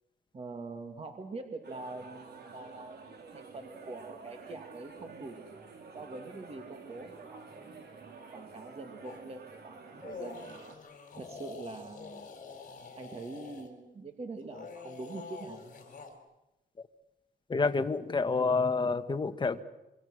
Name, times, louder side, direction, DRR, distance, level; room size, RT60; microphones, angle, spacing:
voice 1, 0.3-3.0 3.3-5.5 5.9-7.8 8.3-10.4 11.2-12.3 13.0-15.8, right 3 dB, 35° right, 5 dB, 2.3 m, -44 dB
sound 1, 1.6-10.8, right 4 dB, 70° right, 4.0 m, -50 dB
sound 2, 9.0-9.2 9.9-13.7 14.4-16.2, left 5 dB, 50° left, 4.3 m, -46 dB
voice 2, 17.5-19.6, left 4 dB, 25° left, 8 dB, 1.2 m, -28 dB
27.0 x 23.0 x 6.4 m, 0.94 s
wide cardioid pair, 135°, 17 cm